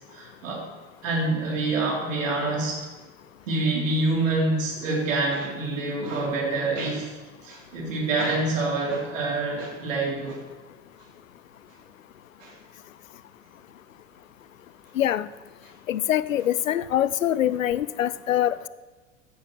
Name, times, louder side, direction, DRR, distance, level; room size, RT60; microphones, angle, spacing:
voice 1, 0.1-0.6 1.0-2.9 3.5-7.1 7.4-10.4 12.4-12.5, right 2 dB, 75° right, -3 dB, 3.2 m, -26 dB
voice 2, 15.0-15.3 15.9-18.7, left 11 dB, 85° left, 17 dB, 0.5 m, -24 dB
14.0 x 10.0 x 3.0 m, 1.3 s
hypercardioid pair, 90°, 39 cm